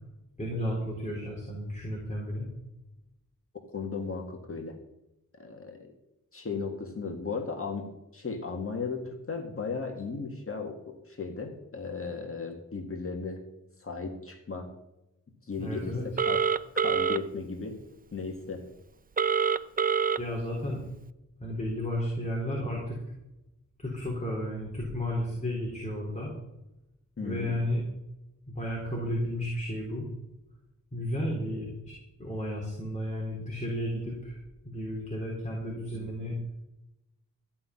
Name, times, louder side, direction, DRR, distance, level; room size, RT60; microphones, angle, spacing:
voice 1, 0.4-2.5 15.6-16.2 20.2-20.8 21.4-23.0 23.8-26.3 27.2-27.8 28.5-30.1 30.9-34.4 34.6-36.4, equal, 20° left, -3 dB, 3.8 m, -33 dB
voice 2, 3.7-4.8 5.4-5.9 6.3-7.9 8.1-13.4 13.8-14.7 15.5-16.4 16.7-17.8 18.1-18.7 27.2-27.6 35.9-36.1, left 4 dB, 45° left, 3 dB, 1.9 m, -36 dB
Telephone, 16.2-17.2 19.2-20.2, right 6 dB, 25° right, 0.5 m, -25 dB
14.5 x 5.9 x 9.8 m, 0.90 s
wide cardioid pair, 135°, 32 cm